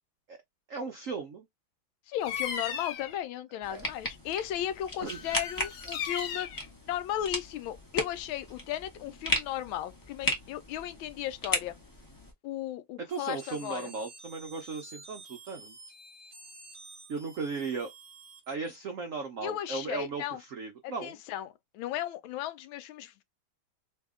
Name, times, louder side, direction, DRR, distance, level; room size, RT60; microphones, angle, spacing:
voice 1, 0.7-1.5 3.7-3.9 5.0-5.2 13.0-15.8 17.1-17.9 18.5-21.2, right 4 dB, 75° right, 0.7 m, -36 dB
voice 2, 2.1-6.5 6.9-11.7 12.4-13.9 19.4-20.4 20.8-23.2, left 11 dB, 80° left, 1.3 m, -35 dB
Bird vocalization bird call bird song, 2.2-3.2 5.1-6.7, left 7 dB, 60° left, 1.2 m, -36 dB
sound 1, 3.6-12.3, left 1 dB, 25° left, 0.5 m, -36 dB
sound 2, 13.1-18.8, right 2 dB, 40° right, 0.7 m, -50 dB
3.0 x 2.7 x 3.5 m
omnidirectional pair, 2.2 m